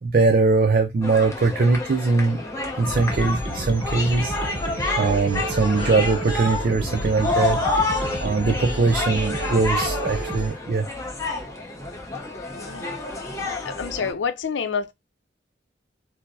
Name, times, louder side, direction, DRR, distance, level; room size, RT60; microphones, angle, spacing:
voice 1, 0.0-2.4 2.8-4.3 5.0-7.8 8.2-10.9, right 3 dB, 50° right, 0.4 m, -21 dB
sound 1, 1.0-14.1, left 2 dB, 15° left, 0.7 m, -29 dB
sound 2, 2.9-10.5, right 2 dB, 25° right, 0.8 m, -31 dB
sound 3, 5.8-10.6, left 3 dB, 35° left, 1.1 m, -42 dB
voice 2, 12.5-13.0 13.6-14.9, left 6 dB, 85° left, 0.5 m, -28 dB
4.5 x 2.0 x 2.6 m
head